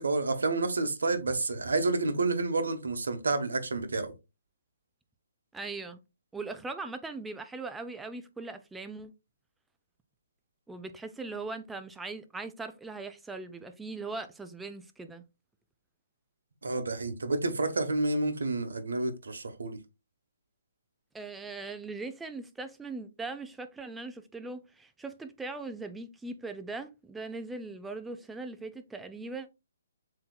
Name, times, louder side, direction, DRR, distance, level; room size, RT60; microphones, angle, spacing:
voice 1, 0.0-4.1 16.6-19.8, right 3 dB, 85° right, 0.9 m, -29 dB
voice 2, 5.5-6.0 6.3-9.1 10.7-15.2 21.1-29.5, right 3 dB, 5° right, 0.4 m, -40 dB
7.5 x 2.8 x 2.3 m
hypercardioid pair, 155°, 0 cm